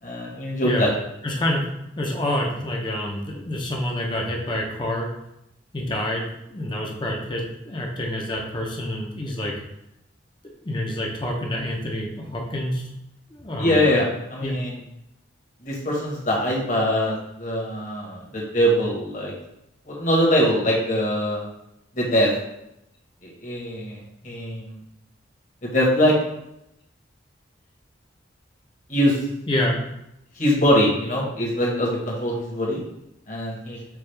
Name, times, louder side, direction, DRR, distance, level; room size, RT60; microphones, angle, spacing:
voice 1, 0.0-0.9 13.6-14.7 15.6-19.3 19.9-21.4 21.9-22.3 23.2-24.8 25.6-26.2 28.9-29.2 30.4-32.8 33.3-33.8, equal, 40° left, -3 dB, 1.2 m, -22 dB
voice 2, 1.2-1.6 2.0-5.1 5.7-9.6 10.6-12.9 13.3-13.8 14.4-14.6 29.5-29.7, left 1 dB, 25° left, 0 dB, 0.6 m, -27 dB
5.9 x 2.3 x 3.3 m, 0.83 s
head